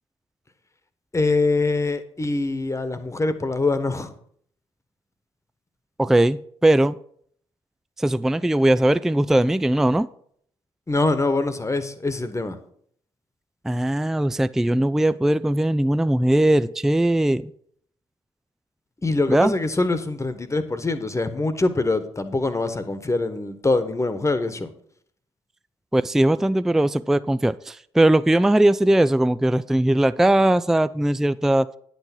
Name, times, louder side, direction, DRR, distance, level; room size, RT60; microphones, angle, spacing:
voice 1, 1.1-4.1 10.9-12.6 19.0-24.7, left 3 dB, 20° left, 1.3 m, -24 dB
voice 2, 6.0-7.0 8.0-10.1 13.6-17.5 19.3-19.5 25.9-31.7, right 1 dB, 5° right, 0.4 m, -19 dB
10.0 x 6.0 x 6.0 m
figure-of-eight pair, 45°, 14 cm